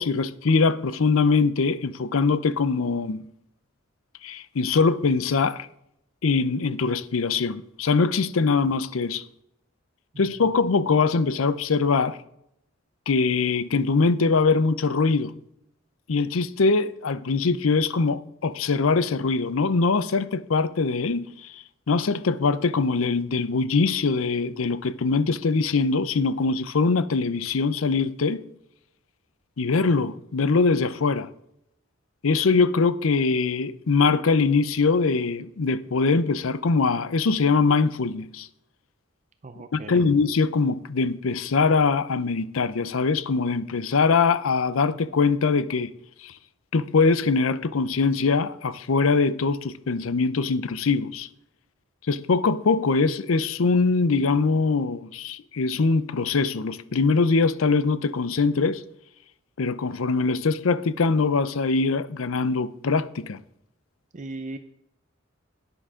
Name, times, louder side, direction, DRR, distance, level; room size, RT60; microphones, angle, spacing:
voice 1, 0.0-3.2 4.2-5.7 6.2-9.2 10.2-12.2 13.1-15.3 16.1-28.4 29.6-31.3 32.2-38.5 39.7-45.9 46.2-46.3 46.7-51.3 52.1-58.8 59.6-63.4, left 4 dB, 85° left, 0.6 m, -22 dB
voice 2, 10.1-10.5 39.4-40.0 64.1-64.6, right 2 dB, 35° right, 0.5 m, -38 dB
11.0 x 10.0 x 3.7 m
head